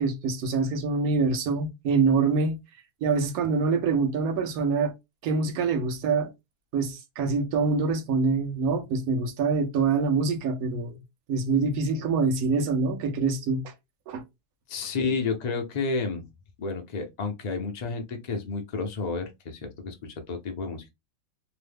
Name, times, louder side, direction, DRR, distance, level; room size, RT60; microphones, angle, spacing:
voice 1, 0.0-2.6 3.0-4.9 5.2-6.3 6.7-11.0 11.3-13.7 14.1-14.2, right 4 dB, 75° right, 1.1 m, -25 dB
voice 2, 14.7-16.3 16.6-20.9, left 4 dB, 50° left, 0.5 m, -31 dB
3.0 x 2.1 x 3.3 m
omnidirectional pair, 1.6 m